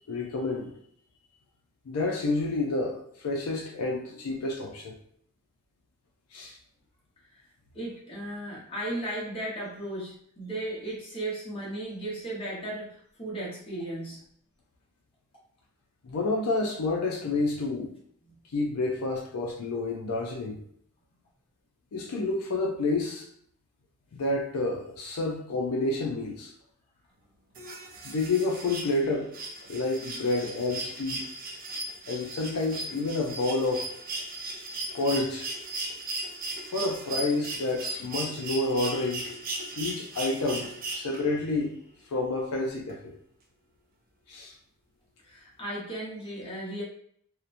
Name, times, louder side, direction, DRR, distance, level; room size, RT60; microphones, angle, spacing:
voice 1, 0.1-0.7 1.9-5.0 6.3-6.6 16.0-17.9 18.5-20.6 21.9-23.3 24.1-26.5 28.0-29.3 29.7-31.2 32.1-33.9 34.9-35.5 36.7-39.3 39.8-41.7 42.1-43.2 44.3-44.5, left 2 dB, 70° left, 0 dB, 0.4 m, -29 dB
voice 2, 7.7-14.2 45.2-46.8, right 1 dB, 25° left, -5 dB, 0.9 m, -35 dB
sound 1, 27.5-41.5 42.9-43.0, right 2 dB, 40° right, 0.4 m, -37 dB
2.8 x 2.1 x 2.5 m, 0.64 s
head